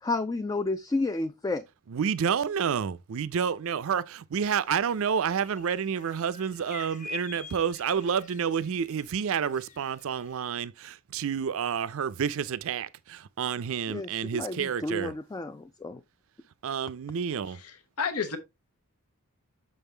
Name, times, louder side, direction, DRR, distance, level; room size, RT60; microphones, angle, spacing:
voice 1, 0.0-1.6 13.9-16.0, left 2 dB, 15° left, 0.3 m, -31 dB
voice 2, 1.9-15.1 16.6-17.6, right 7 dB, 65° right, 0.4 m, -29 dB
sound 1, 4.4-10.5, left 4 dB, 35° left, 0.8 m, -47 dB
voice 3, 17.5-18.4, left 5 dB, 80° left, 1.0 m, -32 dB
6.4 x 5.4 x 3.3 m
head